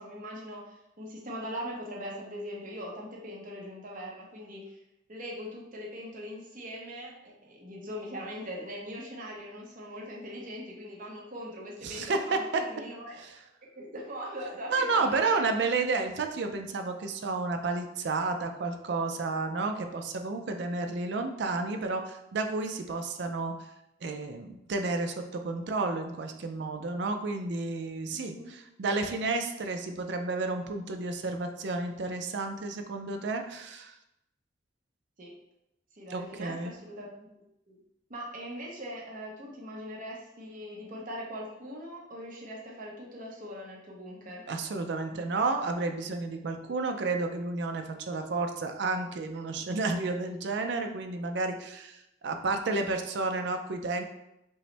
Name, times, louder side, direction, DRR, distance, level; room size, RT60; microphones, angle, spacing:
voice 1, 0.0-4.8 5.1-13.2 13.7-15.5 28.1-28.5 35.2-35.3 35.9-37.3 37.7-37.8 38.1-44.4, equal, 45° right, -2 dB, 0.9 m, -41 dB
voice 2, 11.8-12.6 13.2-13.4 14.7-23.7 24.0-33.9 36.1-36.8 44.5-54.0, right 3 dB, 60° right, 5 dB, 0.4 m, -31 dB
5.2 x 2.1 x 3.2 m, 0.87 s
head